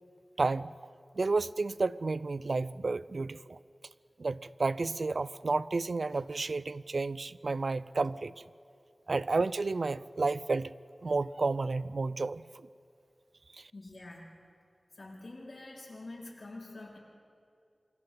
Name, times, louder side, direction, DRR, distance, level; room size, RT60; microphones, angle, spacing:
voice 1, 0.4-0.7 1.1-3.6 4.2-8.4 9.1-10.7 11.0-12.7 13.6-13.7, right 3 dB, 70° right, 17 dB, 0.5 m, -31 dB
voice 2, 13.7-14.3 14.9-17.0, left 2 dB, 60° left, -3 dB, 6.1 m, -46 dB
29.0 x 24.0 x 3.9 m, 2.4 s
wide cardioid pair, 60°, 0 cm